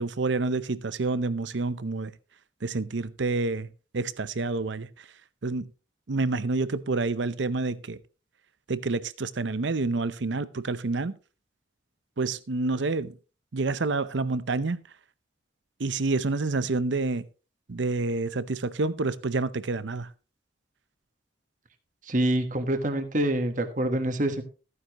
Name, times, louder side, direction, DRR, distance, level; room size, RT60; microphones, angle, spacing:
voice 1, 0.0-2.1 2.6-5.1 5.4-5.7 6.1-8.0 8.7-11.1 12.2-13.2 13.5-14.8 15.8-17.2 17.7-20.1, right 3 dB, 70° right, 0.7 m, -28 dB
voice 2, 22.1-24.4, right 1 dB, 40° right, 1.3 m, -26 dB
14.5 x 9.6 x 3.0 m
head